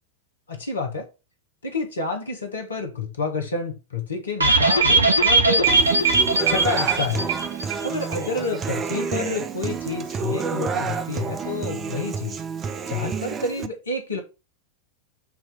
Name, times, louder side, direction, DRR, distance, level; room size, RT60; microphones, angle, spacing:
voice 1, 0.5-1.1 1.6-5.7 6.5-7.3 7.8-12.4 12.9-14.2, left 3 dB, 70° left, 1.4 m, -29 dB
sound 1, 4.4-7.9 8.1-8.2 8.5-8.6, right 3 dB, 75° right, 0.9 m, -19 dB
Human voice / Acoustic guitar, 5.7-13.7, right 6 dB, 25° right, 0.6 m, -29 dB
7.5 x 3.0 x 5.4 m
figure-of-eight pair, 90°, 0 cm